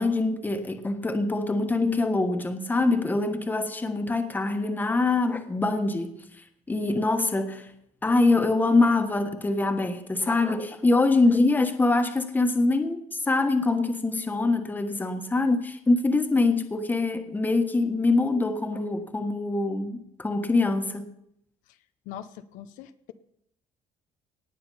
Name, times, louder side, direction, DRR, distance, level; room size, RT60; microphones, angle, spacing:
voice 1, 0.0-6.1 6.7-7.7 8.0-21.1, left 3 dB, 15° left, 1.3 m, -24 dB
voice 2, 22.1-23.1, left 10 dB, 85° left, 0.7 m, -41 dB
18.5 x 6.9 x 5.6 m
cardioid pair, 130°, 13 cm